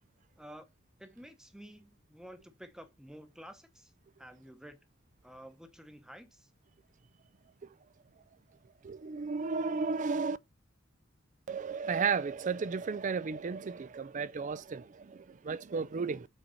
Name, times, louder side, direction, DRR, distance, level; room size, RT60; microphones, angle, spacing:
voice 1, 0.4-0.7 1.0-3.9 4.2-4.8 5.2-6.5, equal, 5° right, 1.0 m, -51 dB
voice 2, 8.8-10.4 11.5-16.3, right 5 dB, 40° right, 0.4 m, -34 dB
6.4 x 4.5 x 4.2 m
head